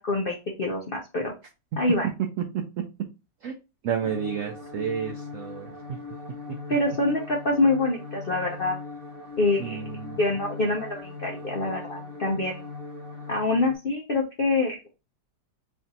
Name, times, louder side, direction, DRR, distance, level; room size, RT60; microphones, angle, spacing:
voice 1, 0.0-1.3 1.8-2.1 6.7-8.8 9.4-9.8 10.2-12.7 13.3-14.9, left 2 dB, 65° left, 0 dB, 0.5 m, -25 dB
voice 2, 3.8-5.8 8.5-8.6 9.6-10.3, right 8 dB, 80° right, 4 dB, 0.7 m, -31 dB
sound 1, 4.0-13.7, left 3 dB, 40° right, 1.0 m, -40 dB
3.4 x 2.5 x 4.0 m, 0.28 s
omnidirectional pair, 1.9 m